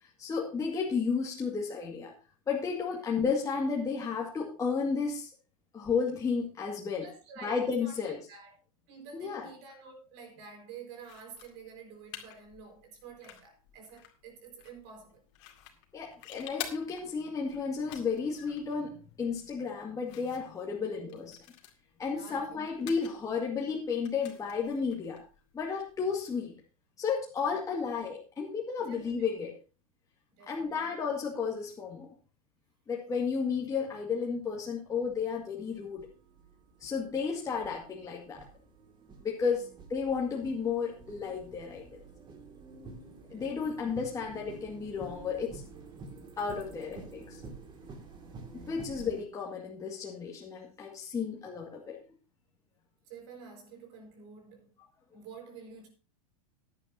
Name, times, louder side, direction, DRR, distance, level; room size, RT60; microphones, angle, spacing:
voice 1, 0.2-2.1 2.5-5.3 5.7-7.0 7.4-8.2 9.1-9.5 15.9-21.4 22.0-25.2 25.5-26.5 27.0-29.5 30.5-32.1 32.9-36.1 36.8-38.5 39.2-41.8 43.3-45.6 46.4-47.4 48.5-52.0, left 5 dB, 20° left, 2.0 m, -33 dB
voice 2, 7.0-8.5 8.9-15.2 20.7-21.3 22.1-23.1 27.4-27.6 28.9-29.1 30.3-30.9 39.5-39.7 43.2-43.6 48.5-48.8 53.1-54.7 55.1-55.9, right 5 dB, 50° right, 4.7 m, -50 dB
sound 1, 11.0-26.2, left 11 dB, 50° left, 2.3 m, -50 dB
sound 2, 34.1-34.2 34.9-49.2, right 3 dB, 25° right, 2.2 m, -50 dB
16.0 x 11.0 x 2.8 m
figure-of-eight pair, 95°, 18 cm